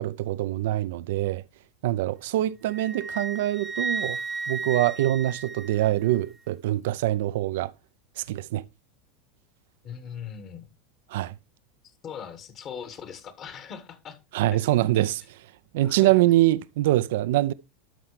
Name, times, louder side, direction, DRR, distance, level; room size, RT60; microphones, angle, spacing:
voice 1, 0.0-1.4 1.8-4.2 4.5-7.7 8.2-8.6 11.1-11.3 14.3-15.2 15.7-17.5, right 15 dB, 65° right, 0.3 m, -24 dB
Wind instrument woodwind instrument, 2.7-6.2, right 4 dB, 15° right, 0.8 m, -33 dB
voice 2, 9.8-10.6 12.0-14.2 14.5-15.0 15.8-16.1, left 7 dB, 40° left, 1.5 m, -40 dB
12.5 x 5.7 x 3.2 m
hypercardioid pair, 85°, 0 cm